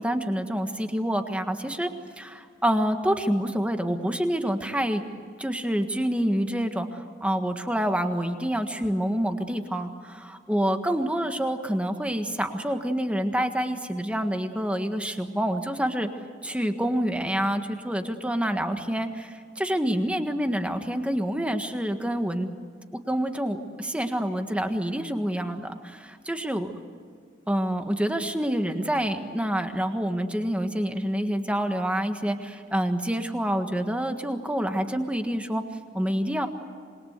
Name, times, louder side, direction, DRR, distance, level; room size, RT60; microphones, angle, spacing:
voice 1, 0.0-1.9 2.2-5.0 5.4-16.1 16.4-22.5 22.9-26.7 27.5-35.6 35.9-36.5, equal, 5° right, 6 dB, 1.6 m, -27 dB
26.5 x 21.5 x 8.1 m, 2.1 s
head